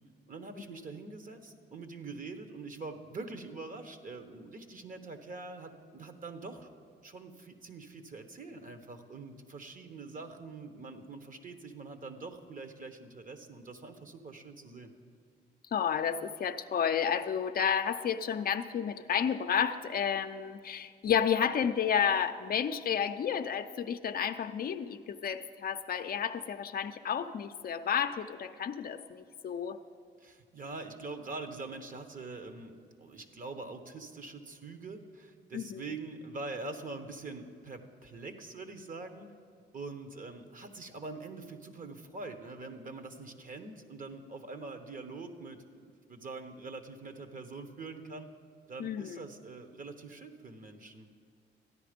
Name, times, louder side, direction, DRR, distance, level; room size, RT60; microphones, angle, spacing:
voice 1, 0.3-6.7 7.0-14.9 30.2-39.3 39.7-48.3 48.7-51.1, right 3 dB, 45° right, 8 dB, 1.1 m, -44 dB
voice 2, 15.7-29.8 35.5-35.8 48.8-49.2, left 8 dB, 50° left, 8 dB, 0.5 m, -31 dB
13.5 x 10.0 x 5.1 m, 2.2 s
cardioid pair, 90°, 20 cm